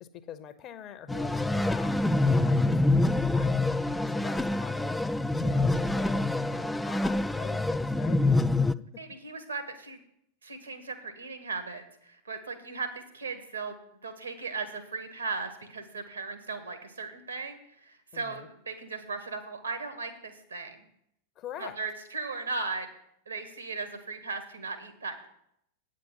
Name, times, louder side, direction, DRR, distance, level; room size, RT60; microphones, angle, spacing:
voice 1, 0.0-5.0 5.4-8.7 18.1-18.5 21.4-21.8, left 9 dB, 35° left, 12 dB, 0.8 m, -44 dB
sound 1, 1.1-8.7, left 2 dB, 5° left, 0.3 m, -26 dB
voice 2, 9.0-10.0 10.4-13.8 14.0-20.8 21.6-22.9 23.3-25.3, right 4 dB, 80° right, 7 dB, 1.6 m, -37 dB
8.8 x 7.5 x 5.8 m, 0.74 s
figure-of-eight pair, 90°, 0 cm